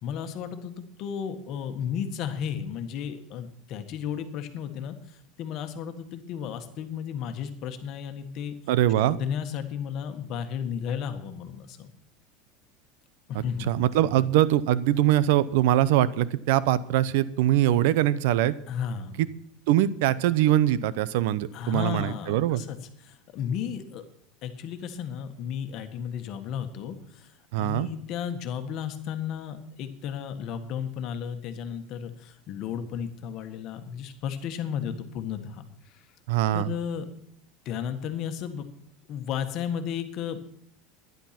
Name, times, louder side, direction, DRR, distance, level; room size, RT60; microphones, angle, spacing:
voice 1, 0.0-4.9 5.4-8.5 9.1-11.9 13.3-13.7 18.7-19.2 21.5-22.8 23.0-24.0 24.4-27.3 27.6-35.6 36.5-37.1 37.6-38.7 39.1-40.5, left 8 dB, 45° left, 8 dB, 1.6 m, -33 dB
voice 2, 8.7-9.2 13.7-18.5 19.2-19.3 19.7-22.6 27.5-27.9 36.3-36.7, right 13 dB, 75° right, 18 dB, 0.7 m, -22 dB
11.5 x 10.5 x 5.9 m, 0.67 s
supercardioid pair, 145°, 0 cm